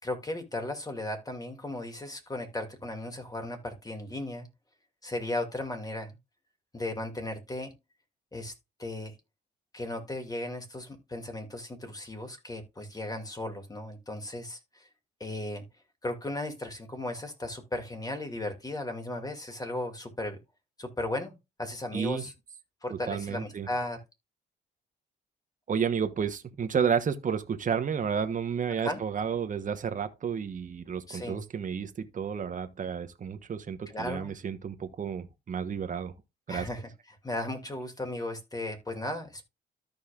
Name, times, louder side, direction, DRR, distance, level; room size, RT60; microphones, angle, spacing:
voice 1, 0.0-4.5 5.0-6.2 6.7-7.7 8.3-8.5 8.8-9.2 9.7-14.9 15.2-15.6 16.0-20.4 20.8-22.3 22.8-24.0 28.8-29.0 31.1-31.4 33.9-34.3 36.5-36.9 37.2-39.4, left 1 dB, 20° left, 2.3 m, -36 dB
voice 2, 21.9-22.2 22.9-23.7 25.7-36.1 36.5-36.7, right 7 dB, 40° right, 1.1 m, -31 dB
13.5 x 5.1 x 2.4 m
cardioid pair, 90°, 20 cm